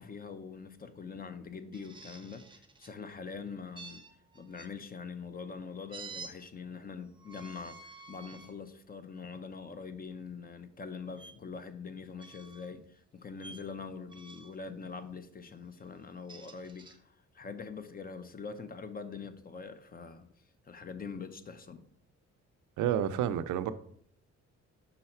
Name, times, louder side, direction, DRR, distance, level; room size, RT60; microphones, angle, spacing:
voice 1, 0.0-4.0 4.3-20.2 20.7-21.8, left 5 dB, 30° left, 0.6 m, -44 dB
sound 1, 1.7-2.9 3.8-4.7 5.9-6.3 7.2-8.5 9.1-9.4 11.1-11.3 12.2-12.7 13.4-13.7 14.1-14.6 16.0-17.0, right 4 dB, 15° right, 0.7 m, -50 dB
voice 2, 22.8-23.7, right 10 dB, 80° right, 0.5 m, -29 dB
5.6 x 3.9 x 4.4 m
cardioid pair, 90°, 30 cm